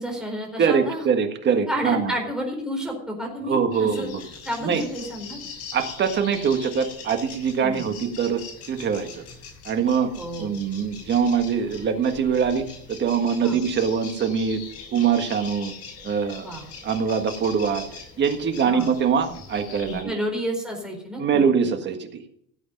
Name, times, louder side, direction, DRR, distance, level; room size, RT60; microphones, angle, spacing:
voice 1, 0.0-1.0 1.7-4.1 4.4-5.4 7.6-7.8 10.1-10.5 13.4-13.6 16.4-16.6 18.6-18.9 20.0-21.4, equal, ahead, 1 dB, 4.4 m, -30 dB
voice 2, 0.6-2.2 3.4-4.2 4.6-4.8 5.7-8.4 8.7-9.2 9.7-10.1 10.4-14.6 14.9-15.7 16.0-16.5 16.8-17.8 18.2-20.2 21.2-22.1, right 6 dB, 35° right, 7 dB, 1.6 m, -23 dB
sound 1, 3.7-20.0, left 5 dB, 50° left, 7.0 m, -41 dB
16.5 x 8.4 x 5.3 m, 0.69 s
cardioid pair, 155°, 32 cm